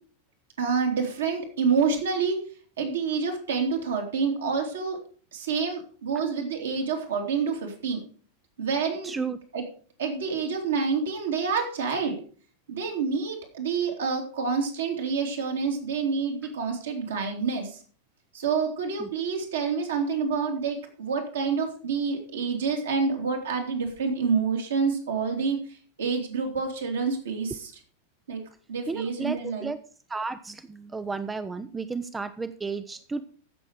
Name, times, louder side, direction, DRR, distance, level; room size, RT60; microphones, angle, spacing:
voice 1, 0.6-2.4 2.8-5.0 5.3-8.0 8.6-9.1 9.5-9.6 10.0-12.2 12.7-17.8 18.3-27.7 28.3-28.4 28.7-29.7, right 5 dB, 65° right, 1 dB, 2.9 m, -28 dB
voice 2, 9.0-9.4 19.0-19.1 28.9-29.8 30.1-33.2, right 4 dB, 10° right, 13 dB, 0.5 m, -33 dB
14.5 x 6.5 x 4.8 m, 0.42 s
figure-of-eight pair, 90°, 0 cm